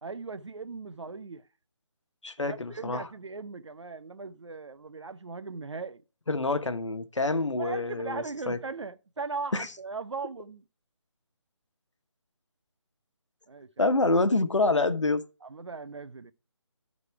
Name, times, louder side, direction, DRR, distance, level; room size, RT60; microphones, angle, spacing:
voice 1, 0.0-1.5 2.4-6.0 7.6-10.6 13.5-13.9 15.4-16.3, right 4 dB, 70° right, 0.7 m, -38 dB
voice 2, 2.2-3.0 6.3-8.6 9.5-9.7 13.8-15.2, left 2 dB, 80° left, 1.1 m, -26 dB
12.0 x 4.1 x 4.6 m
figure-of-eight pair, 155°, 15 cm